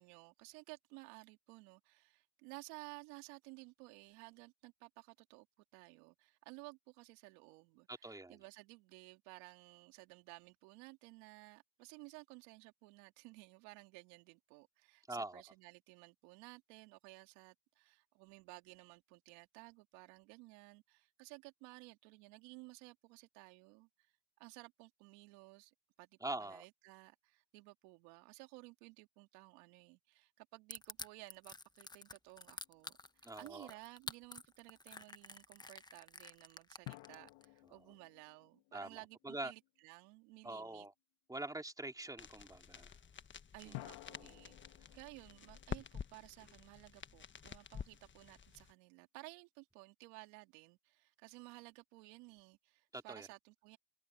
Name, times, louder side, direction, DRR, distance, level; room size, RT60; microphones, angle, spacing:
voice 1, 0.0-5.5 5.7-24.1 24.4-40.9 43.5-53.8, right 26 dB, 75° right, 2.5 m, -56 dB
voice 2, 7.9-8.4 15.1-15.4 26.2-26.6 33.2-33.7 38.7-38.9 39.2-39.5 40.4-40.9 41.3-42.9 43.7-43.8 44.2-44.3 52.9-53.3, right 2 dB, 10° right, 3.8 m, -44 dB
Crushing, 30.7-37.5, left 3 dB, 10° left, 1.1 m, -49 dB
sound 1, 32.5-33.2 36.9-39.7 43.7-47.0, left 22 dB, 70° left, 2.8 m, -55 dB
sound 2, 42.2-48.7, left 7 dB, 25° left, 1.4 m, -50 dB
open air
supercardioid pair, 85°, 42 cm